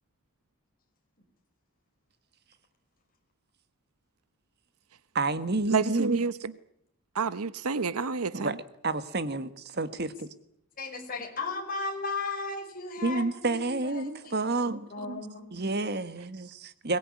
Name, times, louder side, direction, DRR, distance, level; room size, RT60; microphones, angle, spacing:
voice 1, 5.1-6.2 8.3-8.6 8.8-10.3 13.0-14.9 15.5-17.0, right 3 dB, 50° right, 12 dB, 1.5 m, -29 dB
voice 2, 5.7-6.3 7.1-8.5 15.1-15.2, right 5 dB, 90° right, 15 dB, 0.9 m, -29 dB
voice 3, 10.8-13.7 14.0-14.1 14.9-15.5, left 3 dB, 40° left, 3 dB, 5.4 m, -35 dB
22.5 x 20.0 x 9.7 m, 0.73 s
head